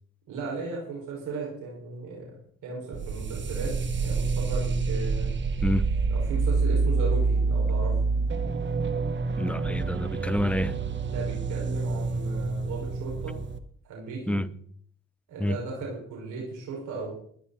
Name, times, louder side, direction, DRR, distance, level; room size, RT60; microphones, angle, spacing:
voice 1, 0.3-2.4 2.6-3.7 4.0-5.3 6.1-8.0 11.0-13.4 13.8-14.4 15.3-17.1, right 3 dB, 85° right, 6.1 m, -36 dB
sound 1, 2.9-13.6, right 4 dB, 40° right, 1.4 m, -27 dB
voice 2, 5.6-5.9 9.4-10.8 14.3-14.5 15.4-15.6, left 1 dB, 5° left, 0.8 m, -28 dB
20.5 x 11.5 x 4.4 m
cardioid pair, 90°, 30 cm